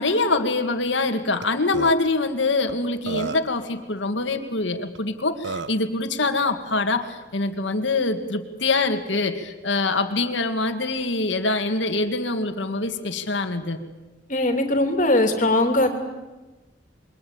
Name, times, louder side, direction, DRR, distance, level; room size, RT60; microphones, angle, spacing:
voice 1, 0.0-13.8, left 3 dB, 70° left, 6 dB, 2.0 m, -24 dB
Burping eructation, 1.4-1.5 1.7-1.9 2.7-2.8 3.1-3.6 4.9-5.0 5.4-5.8, right 4 dB, 65° right, 1.0 m, -31 dB
voice 2, 14.3-15.9, left 1 dB, 40° left, 5 dB, 3.1 m, -20 dB
27.5 x 23.0 x 8.7 m, 1.2 s
head